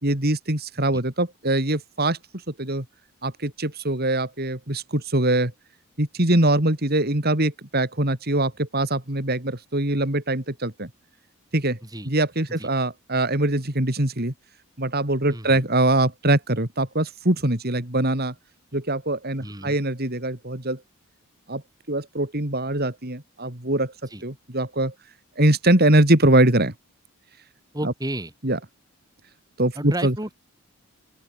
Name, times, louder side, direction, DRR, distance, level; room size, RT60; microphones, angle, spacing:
voice 1, 0.0-2.8 3.2-5.5 6.0-10.9 11.5-11.8 12.0-14.3 14.8-18.3 18.7-20.8 21.5-21.6 21.9-23.9 24.2-24.9 25.4-26.7 27.8-27.9 28.4-28.6 29.6-30.1, right 1 dB, 45° right, 3.5 m, -22 dB
voice 2, 15.3-15.6 19.4-19.8 24.1-24.2 27.7-28.3 29.8-30.3, right 1 dB, 15° right, 5.7 m, -32 dB
open air
head